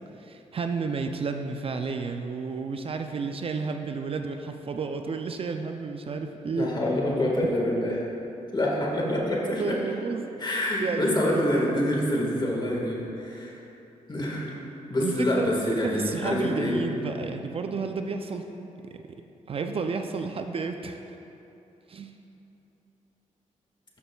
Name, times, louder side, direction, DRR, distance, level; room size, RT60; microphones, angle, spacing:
voice 1, 0.2-6.7 9.6-10.2 10.8-11.8 14.2-14.3 15.0-15.5 15.8-18.5 18.9-19.0 19.5-21.0 21.9-22.1, right 4 dB, 45° right, 5 dB, 0.4 m, -31 dB
voice 2, 6.4-8.1 8.5-9.8 10.4-13.5 14.1-14.5 14.9-16.8, left 1 dB, 35° left, -3 dB, 1.7 m, -26 dB
12.0 x 6.7 x 2.3 m, 2.9 s
cardioid pair, 80°, 13 cm